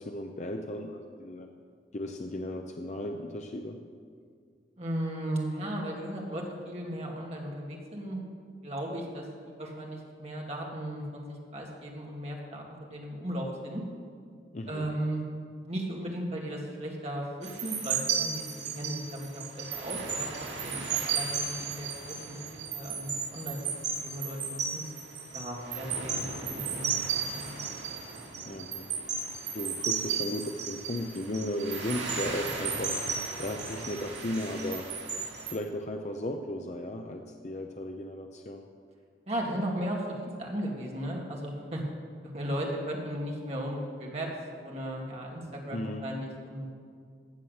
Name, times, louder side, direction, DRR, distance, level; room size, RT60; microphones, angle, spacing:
voice 1, 0.0-1.5 1.9-3.8 14.5-14.9 28.5-28.9 29.5-33.0 33.4-35.0 35.5-38.7 45.7-46.1, left 1 dB, 40° left, 4 dB, 0.6 m, -35 dB
voice 2, 4.8-8.2 8.6-13.8 14.7-15.2 15.6-20.3 20.6-24.8 25.3-26.9 27.3-27.6 39.3-41.8 42.2-46.7, right 1 dB, 35° right, -1 dB, 2.0 m, -36 dB
sound 1, 17.4-35.5, right 6 dB, 85° right, 2.3 m, -34 dB
15.0 x 7.3 x 6.4 m, 2.2 s
head